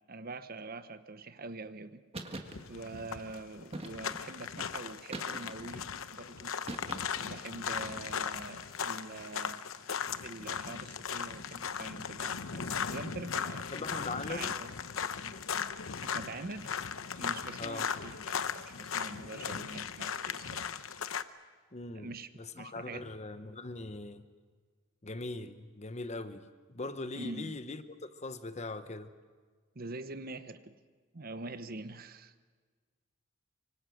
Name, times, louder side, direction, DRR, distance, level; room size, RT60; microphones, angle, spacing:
voice 1, 0.1-2.0 2.7-6.6 7.2-9.6 10.2-13.9 14.3-14.7 16.0-16.7 17.2-20.7 21.9-22.3 22.6-23.1 27.1-27.6 29.7-30.7 31.1-32.3, right 3 dB, 45° right, 1.0 m, -44 dB
sound 1, 2.1-2.6 3.7-4.3 5.1-5.7 6.7-7.3, right 2 dB, 30° right, 1.7 m, -42 dB
sound 2, 2.4-21.2, left 7 dB, 90° left, 0.8 m, -37 dB
voice 2, 13.7-14.5 17.6-17.9 21.7-22.1 22.4-24.3 25.0-29.1, left 2 dB, 35° left, 1.0 m, -40 dB
25.0 x 24.5 x 6.5 m
head